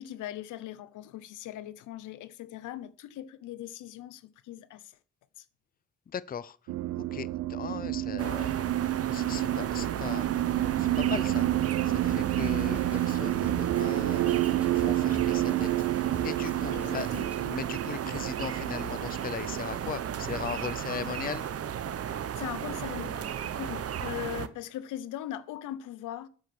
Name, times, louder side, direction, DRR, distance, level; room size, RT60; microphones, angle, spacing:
voice 1, 0.0-5.0 5.4-5.5 16.7-17.3 22.4-26.3, left 12 dB, 85° left, 0.9 m, -40 dB
voice 2, 6.1-6.6 7.1-8.6 9.1-10.3 10.8-11.5 11.8-13.5 13.8-21.5, left 8 dB, 30° left, 0.6 m, -38 dB
sound 1, 6.7-21.3, right 15 dB, 80° right, 0.5 m, -30 dB
sound 2, 8.2-24.5, right 9 dB, 50° right, 1.0 m, -34 dB
Drum kit, 12.1-17.4, equal, 5° right, 2.8 m, -44 dB
8.1 x 7.9 x 6.0 m
cardioid pair, 90°, 30 cm